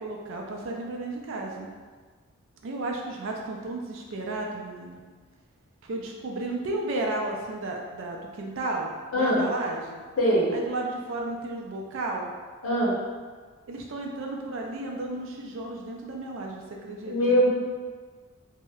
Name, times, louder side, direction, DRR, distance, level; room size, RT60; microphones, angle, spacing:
voice 1, 0.0-1.7 2.6-5.0 5.8-10.0 10.5-12.3 13.7-17.4, right 2 dB, 65° right, 0 dB, 0.4 m, -33 dB
voice 2, 9.1-9.5 10.2-10.5 12.6-13.0 17.1-17.5, equal, 75° left, -5 dB, 0.7 m, -22 dB
2.7 x 2.0 x 2.3 m, 1.5 s
head